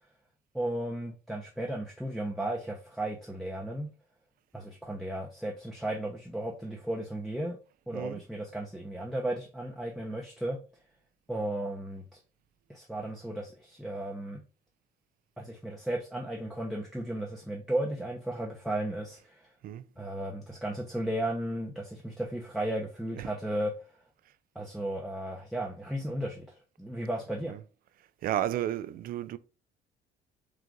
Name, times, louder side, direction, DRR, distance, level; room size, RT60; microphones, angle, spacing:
voice 1, 0.5-3.9 4.5-7.6 7.9-10.6 11.3-12.2 12.7-14.4 15.4-19.5 20.0-23.7 24.5-27.6, right 1 dB, ahead, 0.7 m, -35 dB
voice 2, 28.2-29.4, right 12 dB, 60° right, 0.4 m, -32 dB
3.8 x 2.5 x 4.5 m
cardioid pair, 110°, 17 cm